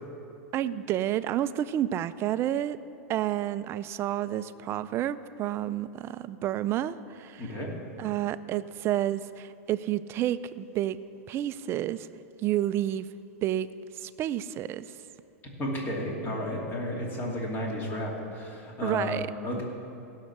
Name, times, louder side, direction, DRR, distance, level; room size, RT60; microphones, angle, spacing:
voice 1, 0.5-2.8 3.1-7.5 8.0-11.0 11.3-12.1 12.4-13.1 13.4-13.7 14.0-14.9 18.8-19.3 19.6-19.7, right 12 dB, 35° right, 14 dB, 0.4 m, -30 dB
voice 2, 7.4-7.7 15.6-19.6, left 1 dB, 30° left, -1 dB, 2.6 m, -32 dB
16.5 x 6.4 x 7.2 m, 2.7 s
hypercardioid pair, 125°, 7 cm